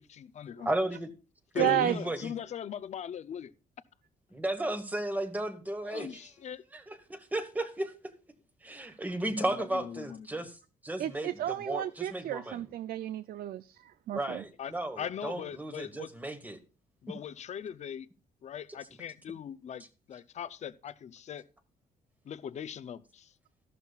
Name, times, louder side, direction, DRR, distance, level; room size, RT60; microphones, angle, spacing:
voice 1, 0.1-0.7 1.5-3.5 5.9-6.2 6.4-6.6 10.0-10.1 14.6-14.7 15.0-16.1 17.0-18.0 18.4-19.8 20.1-21.4 22.3-23.0, left 8 dB, 45° left, 0.5 m, -39 dB
voice 2, 0.6-1.1 1.5-2.3 4.3-6.3 6.7-7.9 8.6-10.6 10.8-12.6 14.1-16.6 18.7-18.8, right 1 dB, 10° right, 1.3 m, -34 dB
voice 3, 1.6-2.0 11.0-14.4, right 13 dB, 65° right, 0.4 m, -32 dB
13.5 x 12.0 x 2.4 m
cardioid pair, 140°, 16 cm